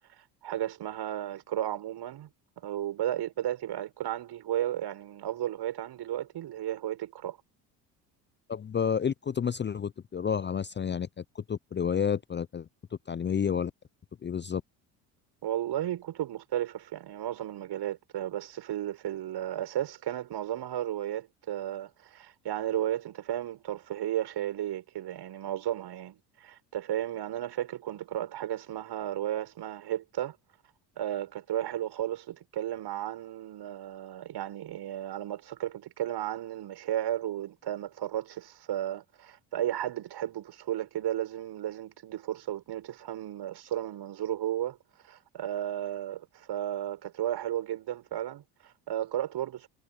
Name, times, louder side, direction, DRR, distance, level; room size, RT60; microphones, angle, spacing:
voice 1, 0.4-2.3 2.6-7.4 15.4-30.4 31.0-44.8 45.0-49.7, right 11 dB, 55° right, 7.6 m, -34 dB
voice 2, 8.5-11.1 11.5-12.7 13.1-13.7 14.2-14.6, left 7 dB, 20° left, 0.7 m, -30 dB
hypercardioid pair, 65°, 49 cm